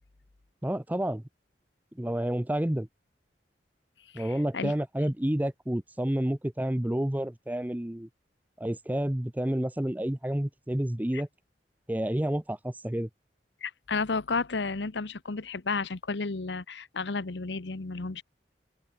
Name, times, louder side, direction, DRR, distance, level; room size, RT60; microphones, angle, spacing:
voice 1, 0.6-1.2 1.9-2.9 4.1-8.1 8.6-11.3 11.9-13.1, right 1 dB, 10° right, 0.6 m, -29 dB
voice 2, 4.1-4.7 11.1-11.2 13.6-18.2, left 4 dB, 85° left, 1.0 m, -32 dB
open air
head